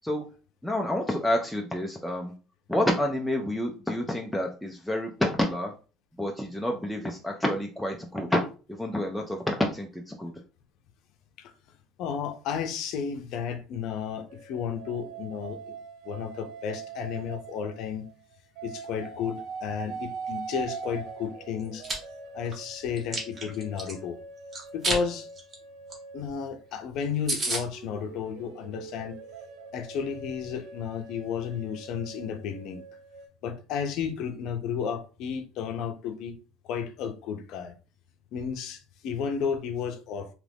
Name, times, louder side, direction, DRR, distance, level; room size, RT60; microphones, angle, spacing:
voice 1, 0.6-2.3 2.7-5.7 6.2-8.4 8.7-10.3, left 1 dB, ahead, 0.4 m, -28 dB
voice 2, 12.0-15.7 16.0-18.1 18.6-21.9 22.3-24.2 24.7-25.3 26.1-29.2 29.7-32.8 33.4-36.3 36.6-37.7 38.3-40.3, left 7 dB, 55° left, 0.6 m, -33 dB
sound 1, 14.3-18.1 18.6-26.7 27.4-33.3, right 5 dB, 60° right, 0.5 m, -42 dB
Chewing mastication, 21.6-21.9 22.5-23.9 24.5-25.0 25.4-25.5 25.9-26.0 26.3-26.4 26.7-26.8 27.0-27.1 27.3-27.6, right 2 dB, 25° right, 0.9 m, -30 dB
2.9 x 2.5 x 3.4 m
cardioid pair, 160°, 0 cm